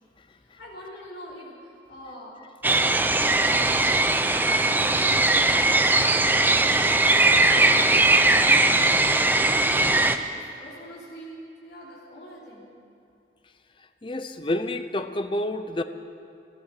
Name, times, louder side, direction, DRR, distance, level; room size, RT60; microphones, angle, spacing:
voice 1, 0.4-2.4 2.8-6.2 6.5-12.7, equal, 70° left, -6 dB, 3.4 m, -43 dB
sound 1, 2.6-10.2, right 2 dB, 10° right, 0.5 m, -20 dB
voice 2, 14.0-15.8, left 1 dB, 30° left, 9 dB, 0.6 m, -28 dB
16.0 x 13.5 x 6.6 m, 2.6 s
head